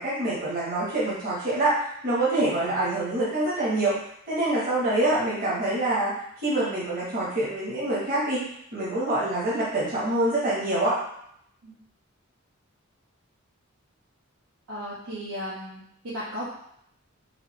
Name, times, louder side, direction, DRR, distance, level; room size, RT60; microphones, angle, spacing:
voice 1, 0.0-6.1 6.4-8.4 8.7-11.0, right 2 dB, 45° right, -8 dB, 1.5 m, -26 dB
voice 2, 14.7-16.4, equal, 75° right, -10 dB, 1.2 m, -35 dB
4.8 x 2.7 x 3.2 m, 0.71 s
head